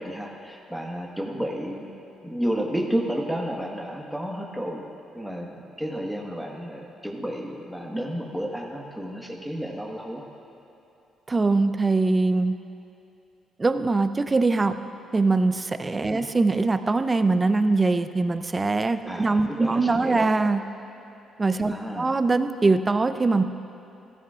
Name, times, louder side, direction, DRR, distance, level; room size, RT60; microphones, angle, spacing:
voice 1, 0.0-1.9 2.2-4.8 5.1-10.3 16.1-16.3 19.1-20.3 21.6-22.1, equal, ahead, -1 dB, 1.4 m, -31 dB
voice 2, 11.3-12.5 13.6-14.8 15.1-20.6 21.4-23.4, right 3 dB, 25° right, 10 dB, 0.5 m, -22 dB
15.5 x 13.5 x 2.5 m, 2.8 s
cardioid pair, 90°, 0 cm